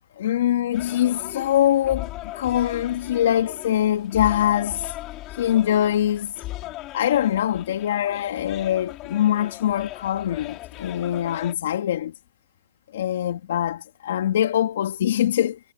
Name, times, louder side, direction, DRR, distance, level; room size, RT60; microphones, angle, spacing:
voice 1, 0.2-4.9 5.3-6.4 6.9-12.1 12.9-15.6, left 11 dB, 75° left, 2.2 m, -23 dB
sound 1, 0.7-11.5, left 17 dB, 35° left, 5.1 m, -38 dB
hypercardioid pair, 140°, 0 cm